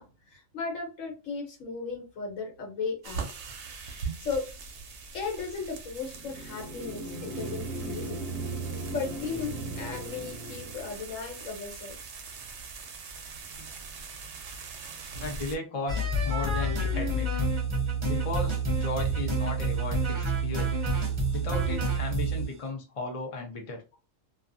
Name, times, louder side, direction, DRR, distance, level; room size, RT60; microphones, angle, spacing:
voice 1, 0.0-3.3 3.8-4.6 5.1-8.2 8.9-12.0, left 5 dB, 80° left, 2 dB, 1.3 m, -36 dB
sound 1, 3.0-15.6, right 5 dB, 70° right, 0.8 m, -42 dB
sound 2, 6.1-11.1, right 2 dB, 60° left, 1.1 m, -37 dB
voice 2, 14.9-17.3 18.1-20.8 21.3-23.8, left 2 dB, 35° left, 1 dB, 0.6 m, -35 dB
sound 3, 15.9-22.5, right 2 dB, 30° right, 0.6 m, -28 dB
2.5 x 2.3 x 2.5 m, 0.31 s
omnidirectional pair, 1.3 m